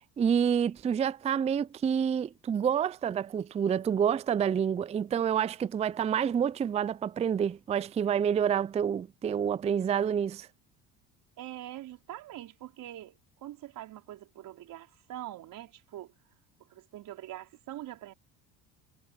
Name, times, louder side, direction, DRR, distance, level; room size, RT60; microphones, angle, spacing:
voice 1, 0.2-10.5, right 8 dB, 20° right, 0.4 m, -28 dB
voice 2, 11.4-16.1 16.7-18.1, right 13 dB, 60° right, 5.0 m, -44 dB
supercardioid pair, 90°, 38 cm